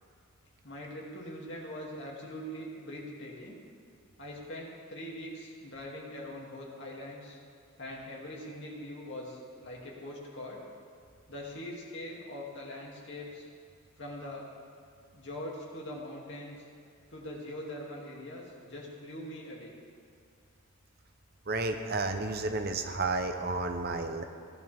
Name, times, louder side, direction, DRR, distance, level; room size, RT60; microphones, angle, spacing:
voice 1, 0.6-3.6 4.2-7.4 7.8-10.6 11.3-13.5 14.0-14.5 15.1-16.6 17.1-19.7, left 1 dB, 55° left, -3 dB, 2.5 m, -42 dB
voice 2, 21.5-24.2, right 3 dB, 45° right, 6 dB, 0.8 m, -31 dB
18.0 x 11.5 x 3.5 m, 2.2 s
head